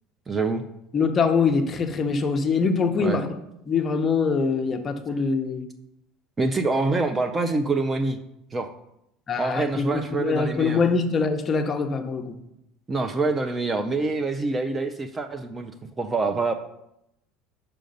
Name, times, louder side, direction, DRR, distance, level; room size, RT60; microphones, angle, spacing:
voice 1, 0.3-0.6 3.0-3.2 6.4-8.2 8.5-8.7 9.4-10.8 12.9-15.7 16.0-16.5, right 3 dB, 15° right, 9 dB, 0.4 m, -25 dB
voice 2, 0.9-3.3 3.7-5.6 9.3-12.3, left 5 dB, 25° left, 6 dB, 0.7 m, -23 dB
5.6 x 5.1 x 5.3 m, 0.83 s
cardioid pair, 150°, 0 cm